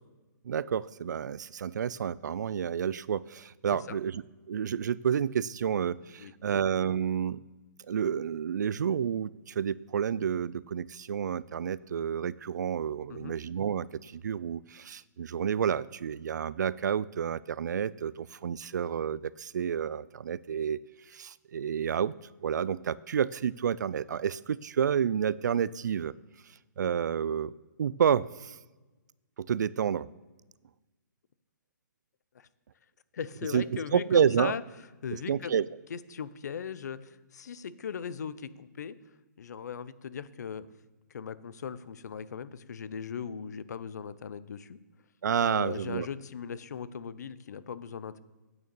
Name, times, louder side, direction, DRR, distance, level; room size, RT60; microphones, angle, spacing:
voice 1, 0.4-4.2 4.5-7.4 7.9-20.8 21.1-22.1 22.4-26.1 26.8-28.6 29.4-30.1 33.5-34.5 35.1-35.7 45.2-46.1, right 8 dB, 65° right, 21 dB, 0.4 m, -30 dB
voice 2, 6.2-6.7 13.1-13.4 32.3-32.5 33.1-34.6 35.0-35.5 35.9-39.0 39.4-40.7 41.1-44.8 45.4-48.2, left 7 dB, 60° left, 16 dB, 0.7 m, -39 dB
8.9 x 6.5 x 7.1 m, 1.2 s
hypercardioid pair, 165°, 10 cm